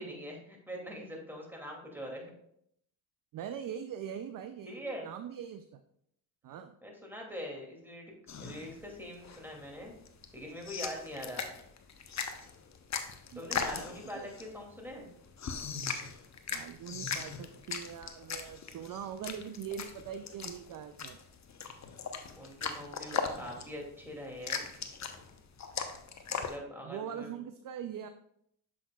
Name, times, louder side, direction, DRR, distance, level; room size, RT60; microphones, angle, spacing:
voice 1, 0.0-2.3 4.6-5.1 6.8-8.1 8.4-9.9 10.3-11.4 13.3-15.1 22.4-24.7 26.3-27.4, equal, 5° right, -1 dB, 2.4 m, -43 dB
voice 2, 3.3-5.8 6.4-6.7 13.3-14.3 16.5-21.2 26.8-28.1, right 8 dB, 45° right, 10 dB, 0.5 m, -42 dB
sound 1, 8.3-26.6, left 6 dB, 35° left, 0.8 m, -39 dB
7.2 x 6.1 x 2.3 m, 0.72 s
supercardioid pair, 60°, 49 cm